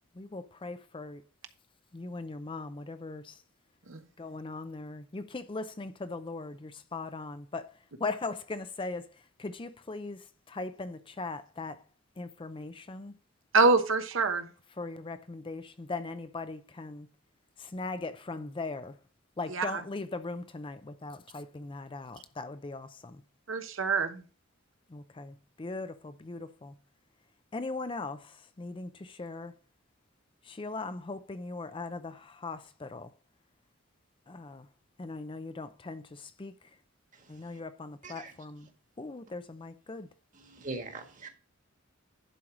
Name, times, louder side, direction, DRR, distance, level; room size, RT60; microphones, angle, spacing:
voice 1, 0.1-1.2 1.9-3.4 4.2-11.8 12.2-13.1 14.8-17.1 17.6-19.0 19.4-23.2 24.9-26.7 27.5-29.5 30.4-33.1 34.3-34.7 35.0-36.5 37.3-38.7 39.0-40.1, left 3 dB, 25° left, 0.5 m, -39 dB
voice 2, 13.5-14.5 19.5-19.8 23.5-24.2, right 3 dB, 65° right, 1.0 m, -25 dB
voice 3, 37.1-37.6 38.0-38.3 40.3-41.3, right 3 dB, 40° right, 1.6 m, -42 dB
11.0 x 4.6 x 4.8 m
head